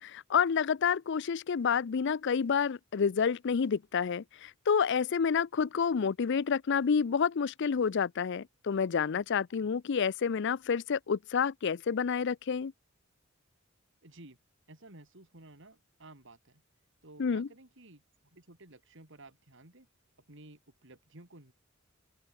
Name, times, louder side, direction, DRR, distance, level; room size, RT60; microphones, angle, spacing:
voice 1, 0.0-12.7 17.2-17.5, left 6 dB, 60° left, 0.5 m, -29 dB
voice 2, 14.0-14.4 14.7-16.6 17.0-18.0 18.3-19.9 20.3-21.5, right 2 dB, 65° right, 3.9 m, -54 dB
open air
head